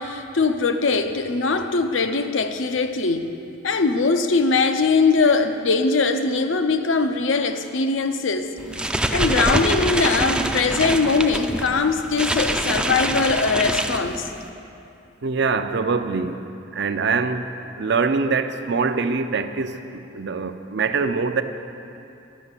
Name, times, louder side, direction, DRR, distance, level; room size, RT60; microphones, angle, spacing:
voice 1, 0.0-3.3 3.6-8.5 9.1-14.3, left 4 dB, 75° left, 8 dB, 0.6 m, -21 dB
sound 1, 8.6-14.5, right 1 dB, 5° right, 0.4 m, -25 dB
voice 2, 15.2-16.4 16.7-17.5 17.8-21.4, right 4 dB, 60° right, 9 dB, 0.5 m, -23 dB
11.0 x 5.9 x 8.2 m, 2.7 s
head